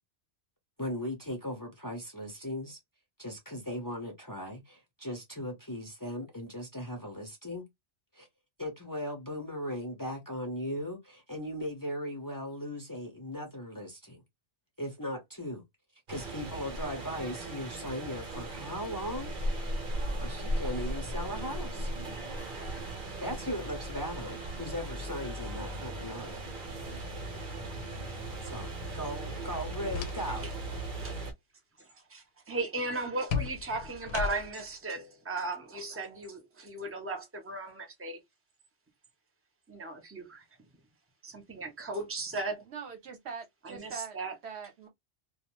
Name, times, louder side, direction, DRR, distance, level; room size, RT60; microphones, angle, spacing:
voice 1, 0.8-2.8 3.2-7.7 8.1-8.3 8.6-14.2 14.8-15.6 16.1-19.3 20.2-21.9 23.2-26.4 28.4-30.5, equal, 20° left, 0.7 m, -38 dB
sound 1, 16.1-31.3, right 1 dB, 50° right, 0.9 m, -37 dB
sound 2, 29.5-30.5 30.9-31.2 33.3-34.7, left 7 dB, 75° left, 0.8 m, -36 dB
voice 2, 31.8-38.2 39.7-40.4 41.2-42.6 43.6-44.3, right 2 dB, 15° right, 0.7 m, -36 dB
voice 3, 42.7-44.2 44.4-44.9, right 6 dB, 70° right, 1.0 m, -42 dB
2.6 x 2.2 x 3.0 m
omnidirectional pair, 1.1 m